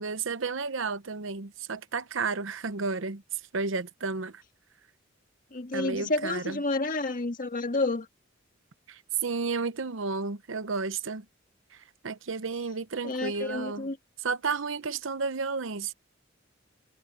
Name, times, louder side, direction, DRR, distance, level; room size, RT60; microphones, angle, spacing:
voice 1, 0.0-3.2 3.5-4.4 5.7-6.6 8.9-11.2 12.0-13.9 14.2-15.9, right 4 dB, 70° right, 0.8 m, -32 dB
voice 2, 5.5-8.1 13.0-14.0, left 2 dB, 45° left, 1.8 m, -30 dB
head